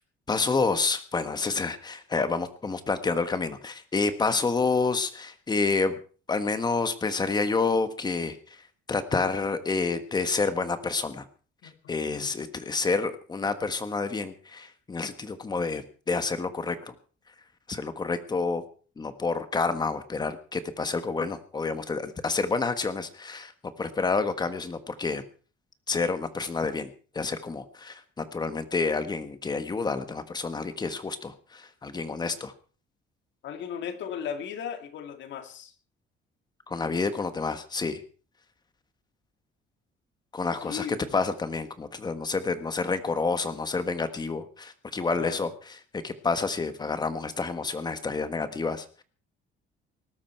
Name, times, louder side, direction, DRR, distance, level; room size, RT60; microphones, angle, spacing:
voice 1, 0.3-6.0 6.3-8.4 8.9-11.2 11.9-16.9 17.7-18.6 19.0-23.5 23.8-25.2 25.9-26.9 27.1-32.5 36.7-38.0 40.3-45.5 45.9-49.0, left 4 dB, 20° left, 10 dB, 1.4 m, -29 dB
voice 2, 11.6-12.3 33.4-35.7 40.6-41.2 45.2-45.5, left 8 dB, 65° left, 8 dB, 2.2 m, -37 dB
19.5 x 13.0 x 4.5 m, 0.39 s
cardioid pair, 165°, 20 cm